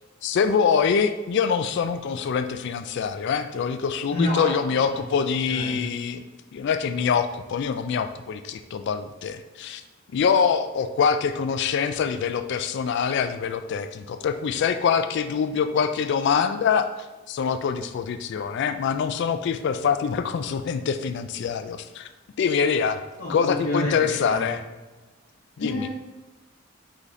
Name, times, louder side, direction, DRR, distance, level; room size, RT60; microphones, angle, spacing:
voice 1, 0.2-6.2 6.5-9.8 10.1-16.9 17.3-22.1 22.4-23.0 23.3-24.6 25.6-25.9, left 6 dB, 60° left, 9 dB, 0.3 m, -24 dB
voice 2, 4.1-4.6 4.9-5.0 5.5-5.8 23.2-24.6 25.6-25.9, left 1 dB, 80° left, -5 dB, 0.9 m, -28 dB
4.9 x 3.9 x 2.7 m, 1.2 s
head